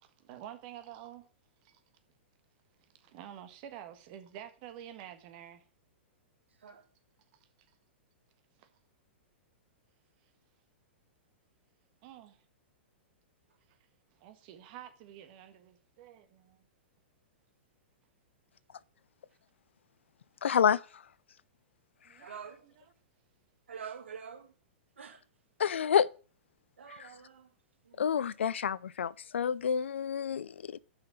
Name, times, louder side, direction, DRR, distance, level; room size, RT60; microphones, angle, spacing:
voice 1, 0.0-1.3 1.6-1.8 2.8-5.6 7.7-7.8 8.6-8.7 10.2-10.3 12.0-12.4 13.7-13.8 14.1-16.7 22.0-22.9, right 11 dB, 50° right, 1.5 m, -49 dB
voice 2, 20.4-20.8 25.6-26.1 28.0-30.8, left 8 dB, 85° left, 0.5 m, -28 dB
voice 3, 22.2-22.7 23.7-24.5 25.0-25.2 26.8-27.5 27.8-28.1, right 7 dB, 90° right, 2.3 m, -46 dB
6.5 x 5.7 x 6.3 m
hypercardioid pair, 125°, 6 cm